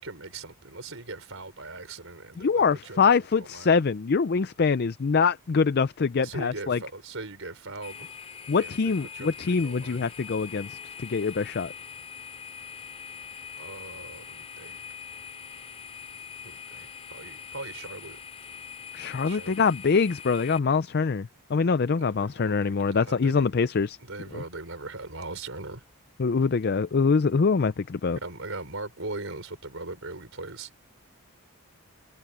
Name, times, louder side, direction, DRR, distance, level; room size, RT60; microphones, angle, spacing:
voice 1, 0.0-3.0 3.3-3.7 6.2-8.1 8.6-10.1 13.6-14.8 16.4-18.2 19.2-19.6 21.9-23.5 24.0-25.8 28.1-30.7, right 3 dB, 60° right, 5.3 m, -40 dB
voice 2, 2.4-6.8 8.5-11.7 18.9-24.0 24.3-24.4 26.2-28.2, left 5 dB, 45° left, 0.4 m, -24 dB
sound 1, 7.8-20.6, left 7 dB, 25° left, 3.5 m, -43 dB
head